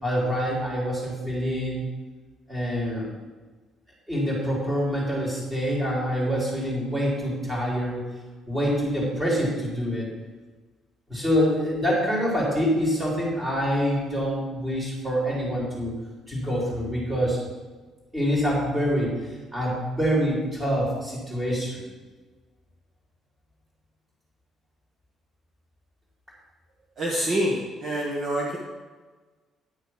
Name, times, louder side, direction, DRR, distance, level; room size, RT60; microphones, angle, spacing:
voice 1, 0.0-1.8 2.5-3.1 4.1-8.0 8.5-10.1 11.1-15.9 16.3-17.4 18.1-19.1 19.5-21.8, equal, 15° right, -4 dB, 3.5 m, -26 dB
voice 2, 27.0-28.6, right 1 dB, 35° right, -2 dB, 1.3 m, -26 dB
10.0 x 6.4 x 6.3 m, 1.3 s
cardioid pair, 165°, 0 cm